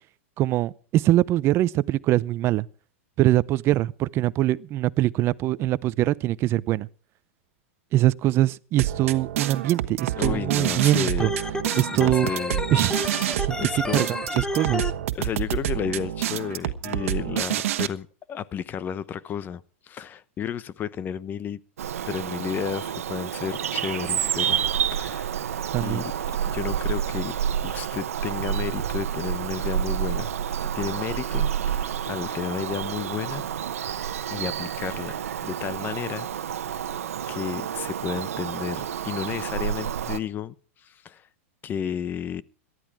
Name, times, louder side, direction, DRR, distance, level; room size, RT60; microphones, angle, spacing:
voice 1, 0.4-2.7 3.2-6.9 7.9-11.3 11.8-12.3 12.7-13.0 13.4-14.1 14.3-14.9 25.7-26.0, right 14 dB, 35° right, 0.6 m, -23 dB
Piano drum glitchy hop loop, 8.8-17.9, right 13 dB, 70° right, 1.3 m, -28 dB
voice 2, 10.2-11.3 11.9-12.6 13.6-14.1 15.1-21.6 22.0-25.3 25.8-26.1 26.4-27.4 27.6-30.3 30.7-33.5 34.3-36.3 36.7-36.9 37.3-40.5 40.8-41.2 41.6-42.4, left 8 dB, 25° left, 0.8 m, -32 dB
Organ, 11.2-14.9, left 2 dB, 10° left, 1.1 m, -30 dB
Bird vocalization bird call bird song, 21.8-40.2, right 9 dB, 85° right, 1.1 m, -29 dB
18.5 x 12.5 x 4.8 m
hypercardioid pair, 130°, 7 cm